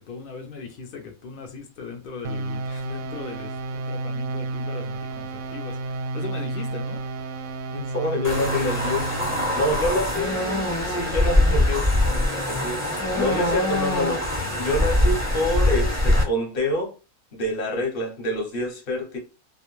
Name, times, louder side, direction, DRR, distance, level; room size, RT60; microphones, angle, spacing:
voice 1, 0.0-7.1 13.3-13.6, left 5 dB, 65° left, 0.5 m, -39 dB
sound 1, 2.2-9.8, right 2 dB, 85° right, 1.0 m, -31 dB
voice 2, 7.7-9.2 9.5-11.9 12.4-16.9 17.3-19.2, left 1 dB, 50° left, 0.8 m, -27 dB
sound 2, 8.2-16.2, left 1 dB, 20° left, 0.5 m, -23 dB
2.3 x 2.1 x 3.0 m
omnidirectional pair, 1.4 m